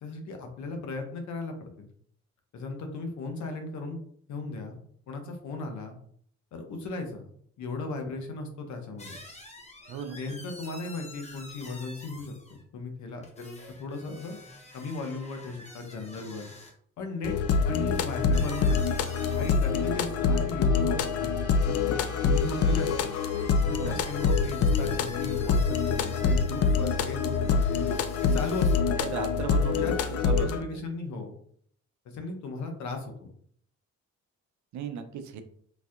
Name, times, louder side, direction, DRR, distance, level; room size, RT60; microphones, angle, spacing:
voice 1, 0.0-1.9 2.5-4.0 4.3-4.8 5.1-5.9 6.5-7.3 7.6-9.2 10.1-12.3 12.7-14.4 14.7-16.5 17.0-17.4 17.6-18.9 19.4-21.4 21.6-23.1 23.6-27.8 28.2-29.1 29.6-30.1 30.4-31.3 32.0-33.3, left 3 dB, 70° left, 4 dB, 0.8 m, -36 dB
sound 1, 9.0-12.6 13.2-16.7 17.5-17.6 17.9-19.8 20.3-20.7 21.7-28.8, left 2 dB, 20° left, 0.9 m, -48 dB
sound 2, 17.2-30.6, left 5 dB, 55° left, 0.4 m, -25 dB
sound 3, 18.4-24.3, right 3 dB, 10° right, 0.9 m, -48 dB
voice 2, 29.0-30.5 30.7-30.8 34.7-35.4, right 7 dB, 70° right, 8 dB, 0.6 m, -36 dB
4.0 x 2.7 x 2.4 m, 0.63 s
cardioid pair, 90°, 30 cm